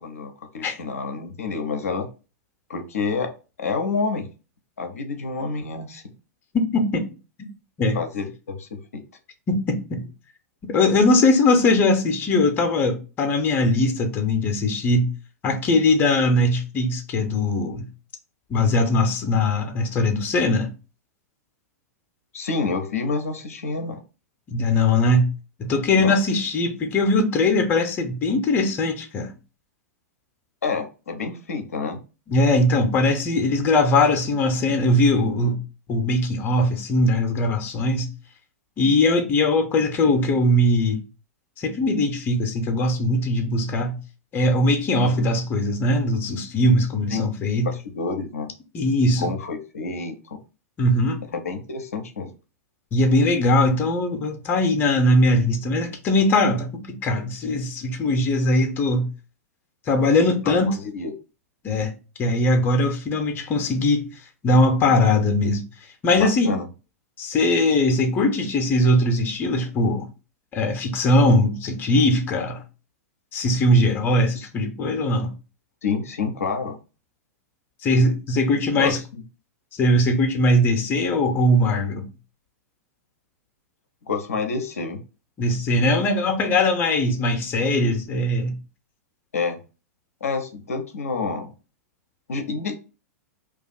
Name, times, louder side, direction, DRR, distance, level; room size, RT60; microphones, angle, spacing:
voice 1, 0.0-2.1 2.7-4.3 4.8-6.0 7.9-9.0 22.3-24.0 26.0-26.1 30.6-32.0 45.0-45.3 47.1-47.3 47.6-48.5 49.2-50.4 51.3-52.3 60.4-61.1 66.2-66.7 74.4-74.5 75.8-76.8 78.8-79.2 84.1-85.0 89.3-89.6 90.2-91.5 92.3-92.8, left 4 dB, 65° left, 0.5 m, -28 dB
voice 2, 6.5-7.0 7.8-8.0 9.5-10.0 10.6-15.1 15.4-17.9 18.5-20.7 24.5-25.3 25.6-29.3 32.3-35.6 35.9-38.1 38.8-41.0 41.6-44.0 44.3-47.7 48.7-49.3 50.8-51.2 52.9-59.1 59.9-60.7 61.6-61.9 62.2-64.1 64.4-65.6 66.0-66.5 67.2-70.1 70.5-72.6 73.3-75.3 77.8-79.0 79.7-82.1 85.4-88.5, left 1 dB, 25° left, 0.6 m, -20 dB
2.4 x 2.3 x 4.0 m
figure-of-eight pair, 100°, 8 cm